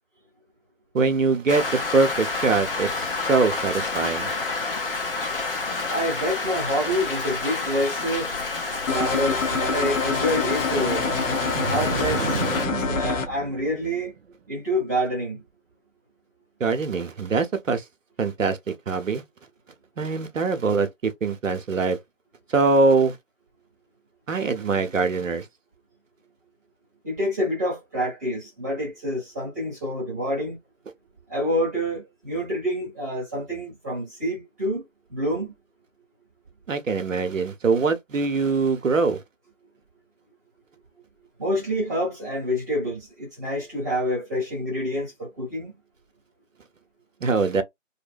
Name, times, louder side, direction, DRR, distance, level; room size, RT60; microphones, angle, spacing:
voice 1, 0.9-4.3 16.6-17.8 18.2-19.2 20.0-22.0 22.5-23.2 24.3-25.5 36.7-39.2 47.2-47.6, right 4 dB, 75° right, 0.8 m, -23 dB
Rain, 1.5-12.7, left 3 dB, 45° left, 0.8 m, -29 dB
voice 2, 5.9-8.3 8.9-11.1 11.6-14.1 14.5-15.4 27.0-30.6 31.3-34.8 35.1-35.5 41.4-45.8, equal, 15° right, 0.9 m, -27 dB
sound 1, 8.9-13.3, left 5 dB, 85° left, 0.6 m, -26 dB
sound 2, 10.7-14.2, right 5 dB, 55° right, 0.5 m, -31 dB
2.7 x 2.1 x 2.4 m
figure-of-eight pair, 155°, 39 cm